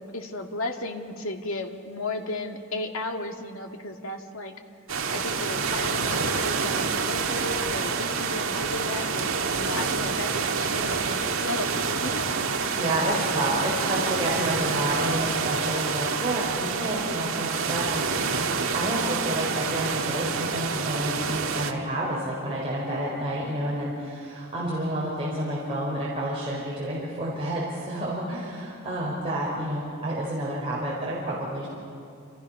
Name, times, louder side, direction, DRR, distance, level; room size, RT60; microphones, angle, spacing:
voice 1, 0.0-4.5 5.1-12.2, left 2 dB, 75° left, 3 dB, 2.1 m, -34 dB
sound 1, 4.9-21.7, right 5 dB, 70° right, 1.6 m, -27 dB
voice 2, 12.7-31.7, right 1 dB, 25° right, -6 dB, 5.0 m, -30 dB
28.5 x 28.0 x 5.9 m, 2.5 s
head